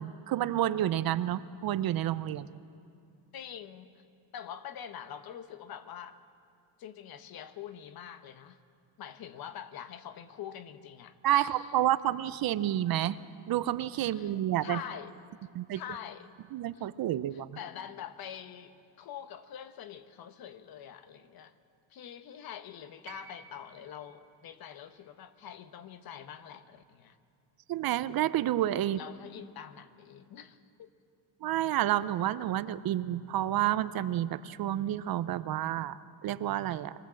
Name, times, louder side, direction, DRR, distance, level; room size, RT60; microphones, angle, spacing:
voice 1, 0.0-2.5 11.2-13.2 13.5-14.8 15.5-15.8 16.5-17.6 27.7-29.0 31.4-36.9, right 12 dB, 50° right, 15 dB, 0.6 m, -29 dB
voice 2, 3.3-4.0 4.3-6.2 6.8-8.6 9.0-11.7 14.1-14.3 14.6-15.1 15.7-16.3 16.7-16.9 17.3-21.5 21.9-27.2 28.9-30.9, left 9 dB, 50° left, 11 dB, 1.1 m, -45 dB
sound 1, 23.1-27.2 28.4-28.5, right 6 dB, 80° right, 2.8 m, -56 dB
24.0 x 19.0 x 7.6 m, 2.5 s
cardioid pair, 150°, 47 cm